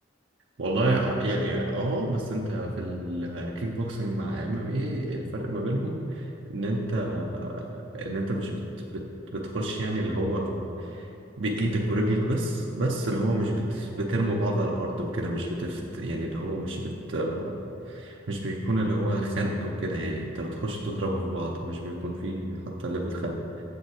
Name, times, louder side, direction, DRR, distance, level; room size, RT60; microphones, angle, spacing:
voice 1, 0.6-8.6 8.9-11.1 11.4-23.4, right 1 dB, 80° right, -1 dB, 0.7 m, -29 dB
7.0 x 7.0 x 4.8 m, 2.9 s
head